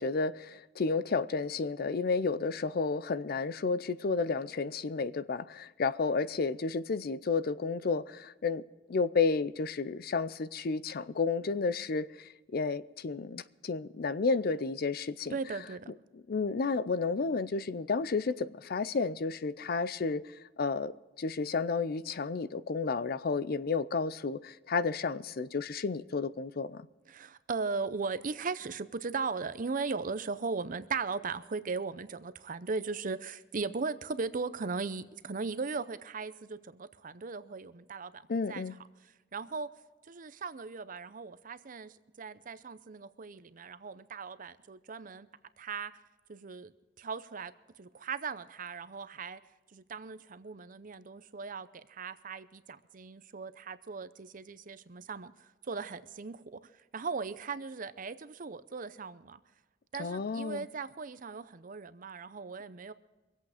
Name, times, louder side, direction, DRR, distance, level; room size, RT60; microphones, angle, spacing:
voice 1, 0.0-8.6 8.9-15.3 16.3-20.2 20.6-20.9 21.2-26.8 38.3-38.7 60.0-60.6, left 4 dB, 55° left, 0.5 m, -31 dB
voice 2, 15.3-15.9 27.1-38.6 39.0-39.7 40.0-45.3 45.6-45.9 46.3-46.7 47.0-47.5 47.8-49.4 49.7-59.4 59.9-62.9, right 4 dB, 45° right, 0.6 m, -38 dB
24.0 x 8.3 x 5.0 m
head